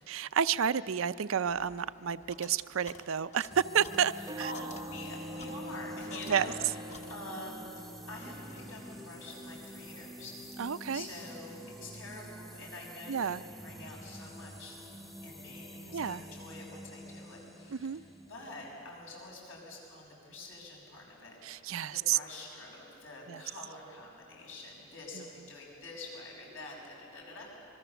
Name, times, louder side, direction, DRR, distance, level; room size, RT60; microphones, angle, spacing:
voice 1, 0.1-4.5 6.3-6.5 10.6-11.0 13.1-13.4 15.9-16.2 17.7-18.0 21.4-22.2 23.3-23.4, right 8 dB, 70° right, 14 dB, 0.5 m, -30 dB
sound 1, 1.5-6.6 6.9-7.6, left 2 dB, 35° left, 1.2 m, -52 dB
sound 2, 3.5-19.2, equal, ahead, 0.9 m, -48 dB
voice 2, 4.1-6.6 7.1-10.6 10.9-27.5, left 2 dB, 70° left, -2 dB, 6.5 m, -46 dB
sound 3, 4.2-11.1, equal, 15° right, 0.5 m, -46 dB
26.5 x 21.5 x 7.0 m, 2.9 s
head